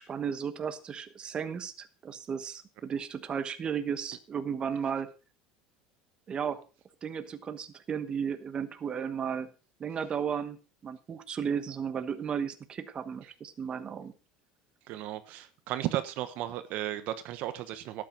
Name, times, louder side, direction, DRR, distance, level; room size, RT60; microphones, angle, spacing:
voice 1, 0.0-5.1 6.3-6.6 7.0-9.5 9.8-10.6 10.8-14.1, right 7 dB, 30° right, 10 dB, 1.2 m, -34 dB
voice 2, 14.9-18.0, right 13 dB, 60° right, 11 dB, 1.2 m, -34 dB
12.0 x 8.9 x 5.1 m, 0.34 s
supercardioid pair, 115°, 3 cm